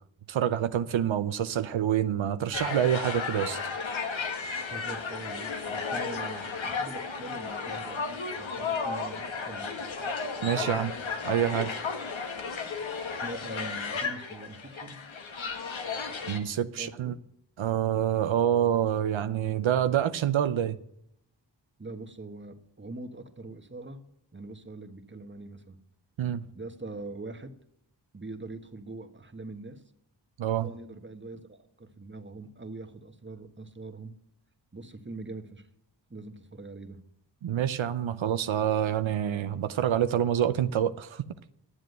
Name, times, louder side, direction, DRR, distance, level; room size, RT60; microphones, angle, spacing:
voice 1, 0.3-3.6 10.4-10.9 11.3-11.7 16.3-17.1 17.6-20.8 26.2-26.4 30.4-30.7 37.4-41.2, right 10 dB, 85° right, 0.7 m, -27 dB
sound 1, 2.5-16.4, left 4 dB, 85° left, 1.6 m, -34 dB
voice 2, 4.6-9.8 10.6-10.9 13.1-15.0 16.8-17.2 21.8-24.0 24.3-25.8 26.5-27.5 28.1-29.8 30.6-34.1 34.7-35.7 36.1-37.0, right 2 dB, 25° right, 1.4 m, -43 dB
11.5 x 7.6 x 8.0 m
cardioid pair, 50°, 45 cm